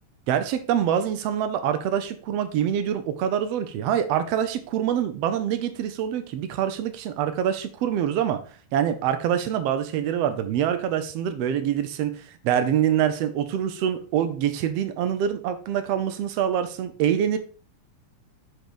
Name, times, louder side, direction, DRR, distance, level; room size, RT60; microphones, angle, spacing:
voice 1, 0.3-8.4 8.7-17.4, right 9 dB, 70° right, 1.6 m, -25 dB
6.5 x 4.7 x 5.0 m
omnidirectional pair, 3.6 m